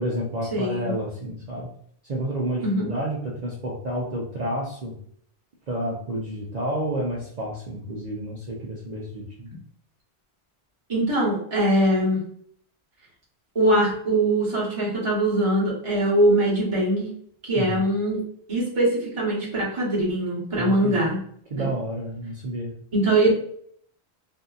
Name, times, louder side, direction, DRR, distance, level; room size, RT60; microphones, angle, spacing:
voice 1, 0.0-1.7 2.0-4.9 5.7-9.5 17.5-17.8 20.6-21.1 21.5-22.7, right 1 dB, 50° right, -3 dB, 0.6 m, -30 dB
voice 2, 0.5-0.9 2.6-2.9 10.9-12.2 13.5-17.1 17.4-18.2 18.5-21.2 21.6-21.7 22.9-23.3, right 1 dB, 30° right, -7 dB, 1.0 m, -22 dB
2.7 x 2.6 x 2.3 m, 0.64 s
omnidirectional pair, 1.1 m